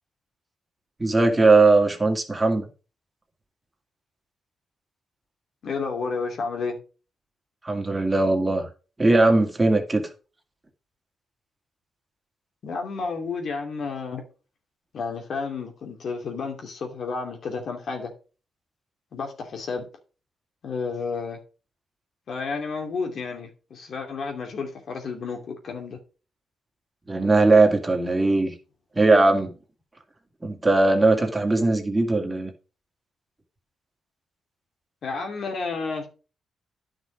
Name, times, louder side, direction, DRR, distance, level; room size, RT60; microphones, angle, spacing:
voice 1, 1.0-2.7 7.6-8.7 9.0-10.1 27.1-28.5 29.0-29.5 30.4-32.5, right 3 dB, 20° right, 2.3 m, -19 dB
voice 2, 5.6-6.8 12.6-14.2 14.9-18.1 19.1-19.9 20.6-21.4 22.3-26.0 35.0-36.1, left 4 dB, 65° left, 2.6 m, -31 dB
10.5 x 6.0 x 5.1 m
cardioid pair, 80°, 0 cm